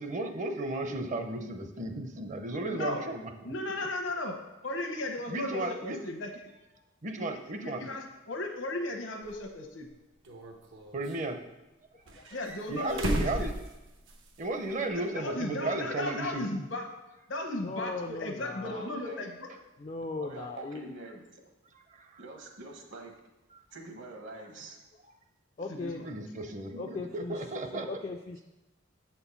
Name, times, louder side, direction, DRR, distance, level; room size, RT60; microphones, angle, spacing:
voice 1, 0.0-3.5 5.3-6.0 7.0-7.9 10.9-11.4 12.7-13.5 14.4-16.5 21.9-22.2 23.5-23.6 26.0-27.9, right 2 dB, 40° right, 6 dB, 0.6 m, -34 dB
voice 2, 2.7-3.0 3.4-4.4 4.6-6.3 7.6-9.9 12.3-13.5 15.1-16.8 17.3-19.5 25.7-26.1, left 2 dB, 75° left, 3 dB, 1.0 m, -35 dB
sound 1, 9.3-9.4 10.2-11.2 12.1-14.4 14.7-14.8 16.4-16.5, equal, 85° right, 1.0 m, -35 dB
voice 3, 17.6-18.8 19.8-21.0 25.6-26.1 26.8-27.4 27.7-28.4, left 3 dB, 35° left, 3 dB, 0.3 m, -38 dB
voice 4, 18.6-19.3 20.2-21.4 22.2-23.1 23.7-24.8, right 2 dB, 70° right, 3 dB, 1.2 m, -45 dB
7.3 x 4.4 x 5.6 m, 1.0 s
head